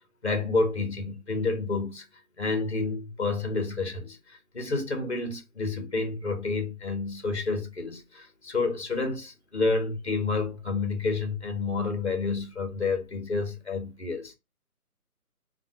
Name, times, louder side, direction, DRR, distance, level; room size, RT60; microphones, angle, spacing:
voice 1, 0.2-2.1 2.4-14.3, left 3 dB, 45° left, 0.6 m, -29 dB
2.4 x 2.1 x 2.6 m
figure-of-eight pair, 175°, 46 cm